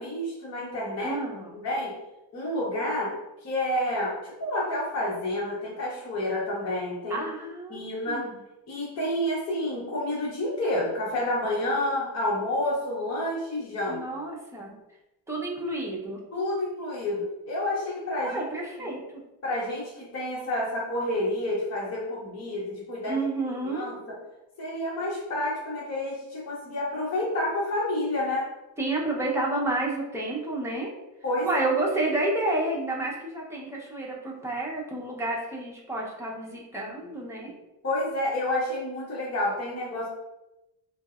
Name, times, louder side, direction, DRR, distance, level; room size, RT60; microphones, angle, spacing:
voice 1, 0.0-1.2 1.5-1.9 2.3-3.2 3.4-7.2 7.7-8.2 8.7-14.0 16.3-18.4 18.8-18.9 19.4-23.2 23.6-24.2 24.6-28.5 31.2-31.5 37.8-40.1, left 1 dB, 35° left, -5 dB, 0.8 m, -29 dB
voice 2, 1.0-1.6 7.1-8.4 13.9-14.8 15.3-16.2 18.2-19.2 23.1-23.9 28.8-30.9 31.4-37.5, right 2 dB, 5° right, -4 dB, 0.7 m, -30 dB
3.8 x 2.0 x 2.4 m, 0.96 s
cardioid pair, 90°, 43 cm